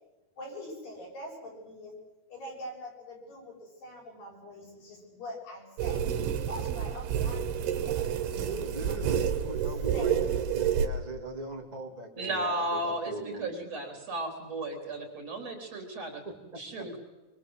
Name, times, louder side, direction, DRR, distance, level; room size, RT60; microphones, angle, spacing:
voice 1, 0.4-1.9 2.3-6.1 6.5-8.5 9.0-9.2 9.7-10.7, equal, 60° left, -2 dB, 9.1 m, -44 dB
sound 1, 5.8-10.9, right 8 dB, 85° right, 3.7 m, -29 dB
voice 2, 8.3-13.5 16.2-16.6, right 2 dB, 10° right, 2 dB, 2.7 m, -40 dB
voice 3, 12.2-16.2 16.6-17.0, right 1 dB, 40° right, 3 dB, 4.4 m, -34 dB
25.5 x 24.0 x 8.0 m, 1.1 s
omnidirectional pair, 4.6 m